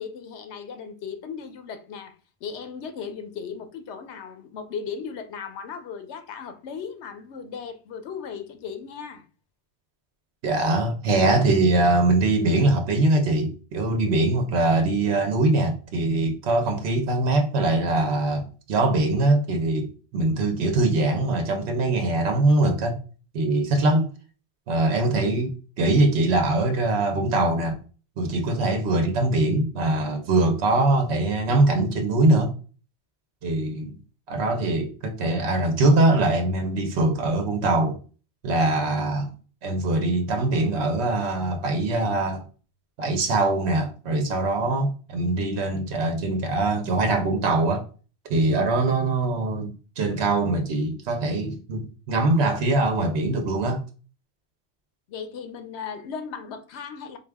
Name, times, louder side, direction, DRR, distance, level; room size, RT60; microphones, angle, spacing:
voice 1, 0.0-2.2 2.4-9.3 55.1-57.2, left 6 dB, 80° left, 0.9 m, -36 dB
voice 2, 10.4-23.0 23.3-24.1 24.7-27.8 28.2-32.5 33.4-34.0 34.3-38.0 38.4-39.3 39.6-42.4 43.0-47.9 48.3-53.8, right 2 dB, 75° right, 1.0 m, -22 dB
3.9 x 2.4 x 3.4 m
omnidirectional pair, 1.1 m